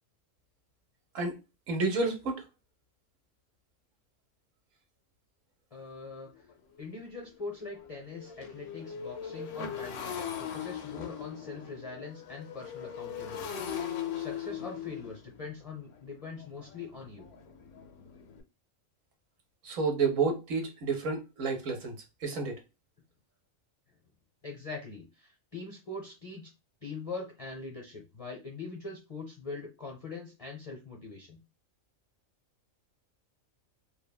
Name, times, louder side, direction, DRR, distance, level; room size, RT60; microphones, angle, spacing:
voice 1, 1.7-2.4 19.6-21.9 22.2-22.6, right 4 dB, 75° right, 1.1 m, -30 dB
voice 2, 5.7-6.4 6.8-13.7 14.1-17.3 24.4-26.5 26.8-31.4, left 4 dB, 40° left, 0.5 m, -42 dB
Motorcycle, 5.8-5.9 6.4-6.5 6.8-18.4, left 8 dB, 70° left, 0.9 m, -40 dB
3.2 x 2.2 x 2.2 m
omnidirectional pair, 1.4 m